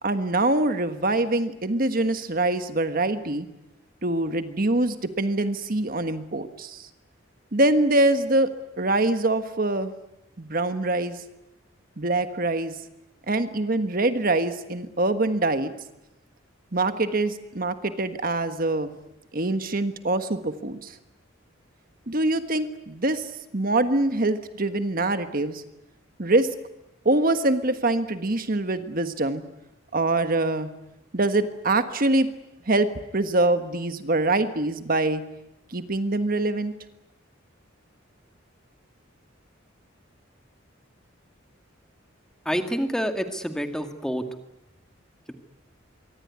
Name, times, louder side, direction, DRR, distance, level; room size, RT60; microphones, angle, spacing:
voice 1, 0.0-3.5 4.0-6.9 7.5-8.5 8.8-9.9 10.4-11.2 12.0-12.7 13.3-15.7 16.7-18.9 19.3-20.9 22.1-23.2 23.5-25.6 26.2-26.5 27.0-29.4 29.9-30.7 31.1-32.3 32.7-32.9 33.1-35.2 35.7-36.7, right 2 dB, 45° right, 9 dB, 1.4 m, -24 dB
voice 2, 42.5-44.2, equal, 5° left, 6 dB, 2.0 m, -27 dB
25.0 x 24.0 x 9.6 m, 0.91 s
head